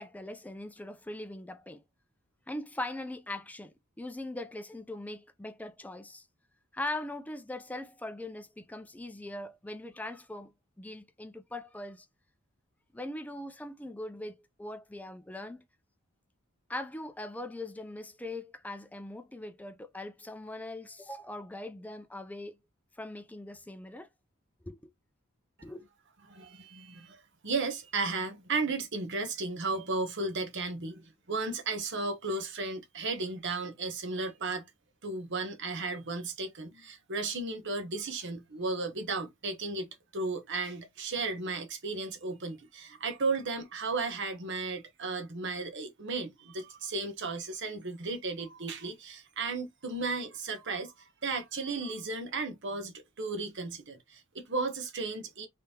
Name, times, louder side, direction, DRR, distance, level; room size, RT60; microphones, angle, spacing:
voice 1, 0.0-1.8 2.5-6.3 6.7-12.1 12.9-15.6 16.7-22.6 23.0-24.1 24.6-24.9 25.6-25.9, left 1 dB, 5° left, 0.4 m, -41 dB
voice 2, 26.3-34.7 35.0-50.9 51.2-55.5, right 3 dB, 55° right, 1.0 m, -34 dB
3.6 x 3.3 x 2.8 m
head